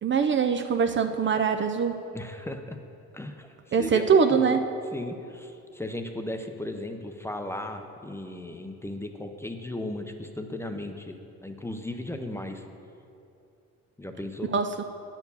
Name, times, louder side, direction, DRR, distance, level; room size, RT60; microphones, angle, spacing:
voice 1, 0.0-2.0 3.7-4.6 14.5-14.7, right 6 dB, 40° right, 7 dB, 0.5 m, -23 dB
voice 2, 2.1-2.8 3.1-4.6 4.9-11.2 11.4-12.6 14.0-14.5, left 1 dB, 10° left, 5 dB, 0.6 m, -36 dB
9.6 x 4.6 x 6.9 m, 2.6 s
cardioid pair, 90°, 30 cm